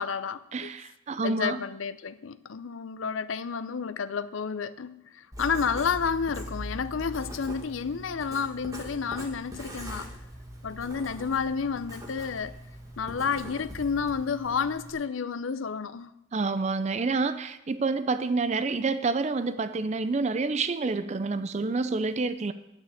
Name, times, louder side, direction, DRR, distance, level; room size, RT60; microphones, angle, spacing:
voice 1, 0.0-0.7 1.2-10.1 10.6-12.5 13.0-16.1, left 6 dB, 80° left, 0.5 m, -30 dB
voice 2, 0.5-1.6 16.3-22.5, right 3 dB, 35° right, 0.4 m, -28 dB
Writing, 5.3-14.9, equal, 15° right, 1.8 m, -41 dB
9.7 x 6.4 x 8.5 m
head